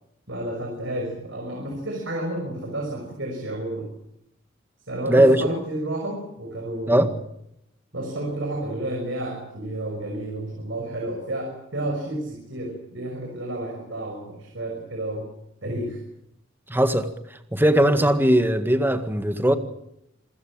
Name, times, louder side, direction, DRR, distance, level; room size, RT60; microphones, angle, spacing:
voice 1, 0.3-3.9 4.9-7.2 7.9-15.3 15.6-16.0, right 1 dB, 70° right, 1 dB, 6.1 m, -31 dB
voice 2, 5.1-5.4 6.9-7.1 16.7-17.1 17.5-19.6, right 1 dB, 10° right, 8 dB, 1.9 m, -19 dB
27.0 x 16.0 x 8.9 m, 0.78 s
head